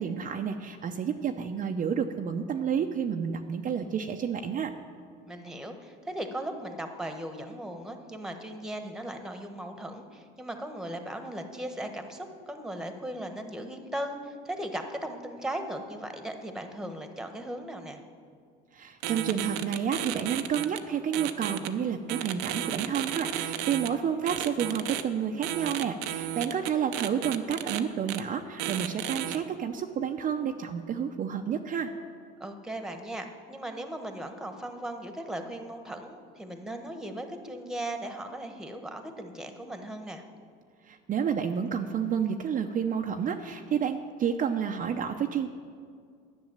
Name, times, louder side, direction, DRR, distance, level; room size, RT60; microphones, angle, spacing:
voice 1, 0.0-4.7 18.7-31.9 40.8-45.5, right 7 dB, 40° right, 4 dB, 0.7 m, -30 dB
voice 2, 5.3-18.0 32.4-40.2, right 1 dB, 5° right, 6 dB, 1.3 m, -37 dB
sound 1, 19.0-20.8 21.1-21.7 22.1-23.9 24.3-25.0 25.4-27.8 28.1-28.2 28.6-29.4, right 12 dB, 80° right, 0.7 m, -33 dB
10.5 x 6.3 x 8.9 m, 2.2 s
supercardioid pair, 95°, 21 cm